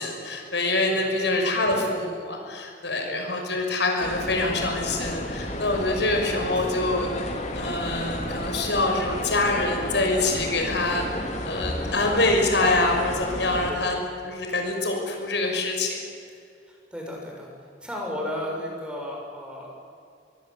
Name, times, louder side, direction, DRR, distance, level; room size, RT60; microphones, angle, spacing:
voice 1, 0.0-13.9 14.2-16.0, left 2 dB, 75° left, 2 dB, 6.0 m, -25 dB
voice 2, 0.9-1.5 3.0-3.3 6.4-6.7 13.7-13.9 16.7-19.7, left 1 dB, 5° right, -1 dB, 6.7 m, -35 dB
sound 1, 4.0-13.7, left 1 dB, 40° left, 3.5 m, -32 dB
28.0 x 23.0 x 8.3 m, 2.4 s
head